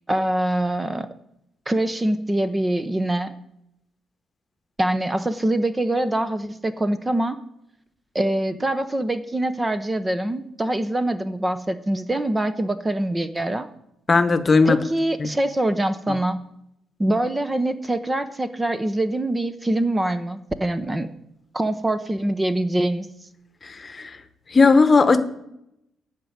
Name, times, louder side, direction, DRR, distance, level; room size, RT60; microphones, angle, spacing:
voice 1, 0.1-1.1 1.7-3.3 4.8-7.4 8.1-13.7 14.6-16.4 17.0-21.1 21.5-23.1, right 1 dB, 20° right, 11 dB, 0.7 m, -24 dB
voice 2, 14.1-14.8 15.2-15.3 23.6-24.2 24.5-25.2, left 4 dB, 35° left, 10 dB, 1.0 m, -17 dB
11.5 x 5.2 x 8.6 m, 0.81 s
cardioid pair, 90°, 0 cm